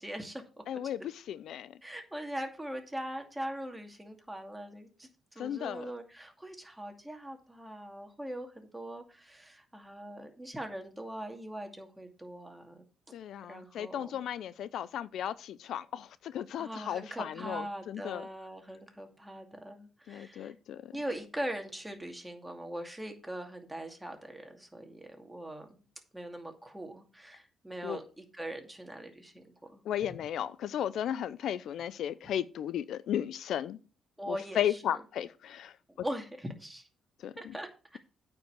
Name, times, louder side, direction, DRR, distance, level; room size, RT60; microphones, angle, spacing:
voice 1, 0.0-0.6 1.8-12.8 13.5-14.2 16.6-20.5 20.9-25.8 26.1-29.4 29.7-29.8 34.2-35.0 36.0-36.9 37.4-38.0, right 1 dB, 10° right, 2.4 m, -41 dB
voice 2, 0.7-1.7 5.4-5.9 13.1-18.3 20.1-20.9 27.8-28.0 29.9-33.8 34.3-35.7 37.2-37.6, left 10 dB, 75° left, 0.5 m, -35 dB
9.0 x 5.3 x 6.8 m
cardioid pair, 90°, 0 cm